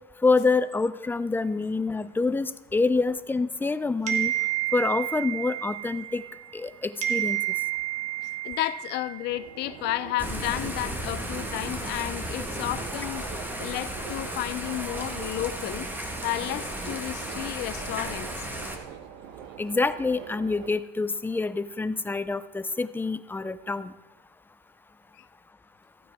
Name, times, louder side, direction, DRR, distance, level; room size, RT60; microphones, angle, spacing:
voice 1, 0.2-4.3 4.7-6.2 6.5-7.4 19.6-23.9, left 3 dB, 10° left, 0.5 m, -26 dB
sound 1, 4.1-6.7 7.0-9.6, right 14 dB, 40° right, 1.5 m, -30 dB
voice 2, 8.4-13.2 13.6-15.9 16.2-18.5, left 16 dB, 65° left, 0.6 m, -32 dB
Subway metro underground, 9.3-20.7, right 8 dB, 80° right, 1.0 m, -44 dB
Thunder / Rain, 10.2-18.8, right 1 dB, 10° right, 1.5 m, -34 dB
15.5 x 9.4 x 3.6 m
cardioid pair, 120°, 19 cm